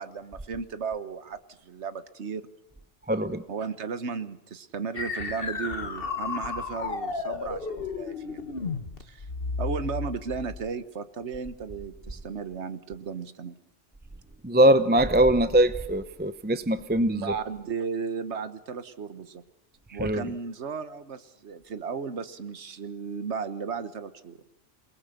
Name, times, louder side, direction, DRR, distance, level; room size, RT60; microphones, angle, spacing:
voice 1, 0.0-2.5 3.5-8.4 9.0-9.3 9.6-13.5 17.1-19.4 19.9-24.5, right 5 dB, 65° right, 12 dB, 1.5 m, -35 dB
voice 2, 3.1-3.4 14.4-17.3 20.0-20.2, right 1 dB, 10° right, 11 dB, 0.6 m, -22 dB
sound 1, 4.9-10.7, left 4 dB, 50° left, 1.6 m, -33 dB
28.0 x 19.5 x 6.7 m, 0.93 s
omnidirectional pair, 1.2 m